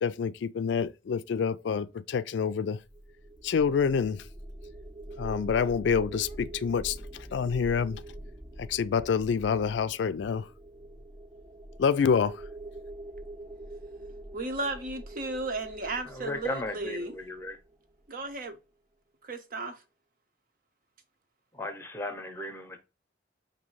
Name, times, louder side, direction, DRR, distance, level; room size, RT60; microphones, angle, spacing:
voice 1, 0.0-2.8 3.4-4.2 5.2-8.0 8.6-10.5 11.8-12.4, left 6 dB, 80° left, 0.3 m, -27 dB
sound 1, 2.8-17.9, right 1 dB, 15° right, 0.3 m, -44 dB
voice 2, 14.3-17.2 18.1-18.6 19.2-19.8, right 2 dB, 50° right, 0.8 m, -34 dB
voice 3, 16.1-17.6 21.5-22.8, left 1 dB, 15° left, 0.7 m, -36 dB
5.2 x 2.7 x 3.0 m
head